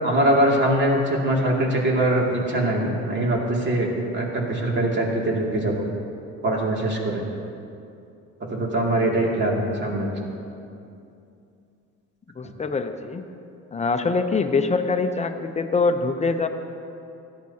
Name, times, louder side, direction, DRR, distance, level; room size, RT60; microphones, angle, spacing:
voice 1, 0.0-5.9 6.4-7.2 8.5-10.1 12.4-12.5, right 1 dB, 40° right, -2 dB, 2.5 m, -22 dB
voice 2, 12.4-13.2 13.7-16.5, left 4 dB, 25° left, 7 dB, 0.7 m, -24 dB
16.5 x 12.0 x 2.9 m, 2.6 s
cardioid pair, 105°, 29 cm